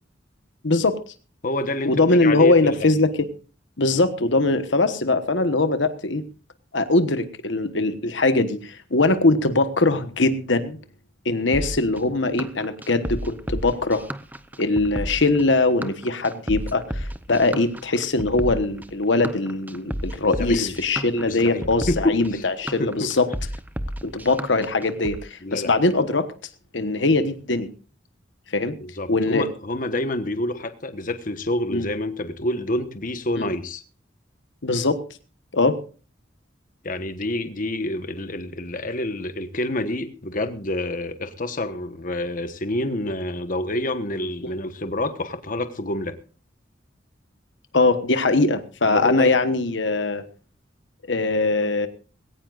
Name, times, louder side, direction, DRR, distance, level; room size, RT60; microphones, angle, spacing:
voice 1, 0.6-1.0 1.8-3.3 3.8-6.2 6.7-10.8 11.2-14.1 14.6-23.3 24.0-26.3 26.7-27.7 28.5-28.7 29.1-29.5 31.7-31.9 33.4-33.5 34.6-35.0 35.5-35.8 47.7-50.2 51.1-51.9, left 2 dB, 75° left, 10 dB, 1.2 m, -21 dB
voice 2, 1.4-2.9 20.2-20.7 21.3-22.4 22.8-23.1 25.4-25.7 28.8-33.8 36.8-46.1 48.8-49.3, left 1 dB, 45° left, 9 dB, 1.2 m, -28 dB
sound 1, 11.5-25.2, equal, 10° right, 0.7 m, -32 dB
20.0 x 17.5 x 2.5 m, 0.37 s
head